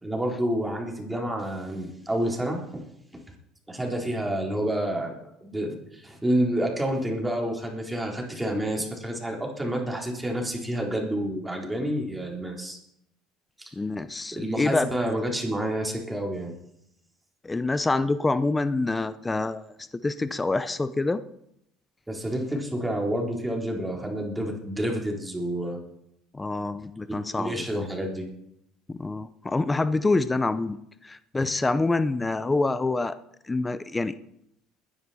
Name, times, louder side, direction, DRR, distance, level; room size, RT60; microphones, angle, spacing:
voice 1, 0.0-2.8 3.7-12.8 13.6-13.7 14.3-16.5 22.1-25.8 27.3-28.2, right 1 dB, 10° right, 0 dB, 3.8 m, -29 dB
voice 2, 13.7-15.1 17.4-19.7 20.0-21.2 26.3-27.7 28.9-30.8 31.0-33.2 33.5-34.1, left 3 dB, 15° left, 13 dB, 0.7 m, -26 dB
21.0 x 10.0 x 4.3 m, 0.78 s
supercardioid pair, 95°, 0 cm